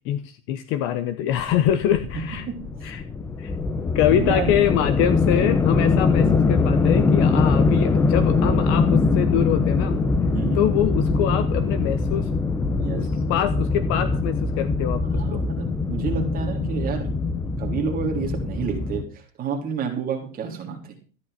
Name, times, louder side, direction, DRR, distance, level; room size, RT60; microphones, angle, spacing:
voice 1, 0.0-2.4 2.8-3.0 3.4-3.5 3.9-9.9 10.5-12.3 13.0-15.4, left 11 dB, 30° left, 12 dB, 0.9 m, -24 dB
sound 1, 1.3-19.0, left 4 dB, 5° left, 0.6 m, -22 dB
voice 2, 2.1-2.9 4.1-4.5 10.3-10.7 12.8-13.1 15.1-17.1 17.6-21.0, right 6 dB, 20° right, 2 dB, 3.6 m, -30 dB
14.0 x 11.0 x 5.8 m, 0.37 s
supercardioid pair, 155°, 42 cm